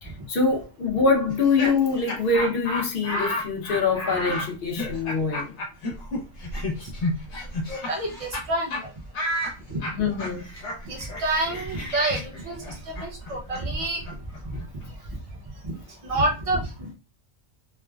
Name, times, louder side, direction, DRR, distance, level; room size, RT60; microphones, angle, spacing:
voice 1, 0.0-5.6 9.9-10.5, left 4 dB, 55° left, 0.9 m, -24 dB
Laughter, 1.3-8.4 8.7-8.8 9.1-14.9, left 1 dB, 70° left, 1.1 m, -32 dB
voice 2, 7.7-8.8 9.7-9.8 10.8-12.6 12.9-14.0 14.4-14.6 15.6-15.7 16.0-16.9, right 2 dB, 35° right, 0.8 m, -28 dB
3.2 x 2.1 x 2.3 m
omnidirectional pair, 1.2 m